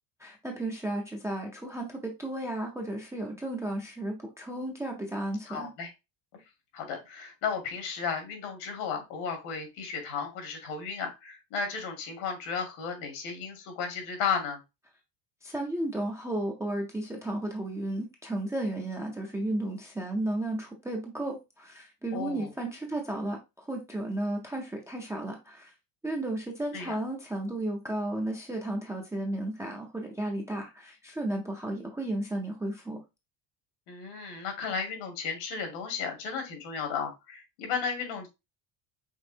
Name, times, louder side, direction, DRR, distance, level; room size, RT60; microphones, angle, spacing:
voice 1, 0.2-5.7 15.4-25.7 26.0-33.0, right 1 dB, 5° right, 1 dB, 0.3 m, -33 dB
voice 2, 5.5-5.9 6.7-14.6 22.1-22.5 26.7-27.0 33.9-38.3, left 6 dB, 85° left, 4 dB, 2.2 m, -34 dB
5.3 x 3.4 x 2.7 m, 0.24 s
cardioid pair, 170°, 48 cm